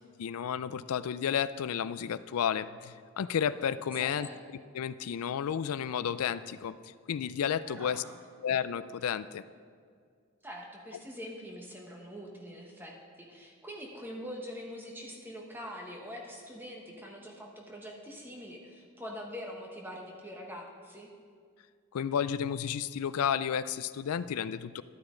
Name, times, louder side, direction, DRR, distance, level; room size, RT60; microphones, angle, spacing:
voice 1, 0.2-4.3 4.7-8.0 8.4-9.4 21.9-24.8, left 8 dB, 80° left, 15 dB, 0.4 m, -32 dB
voice 2, 4.0-4.4 7.6-8.2 10.4-21.1, equal, 10° right, 0 dB, 1.2 m, -44 dB
13.0 x 8.8 x 3.8 m, 2.1 s
head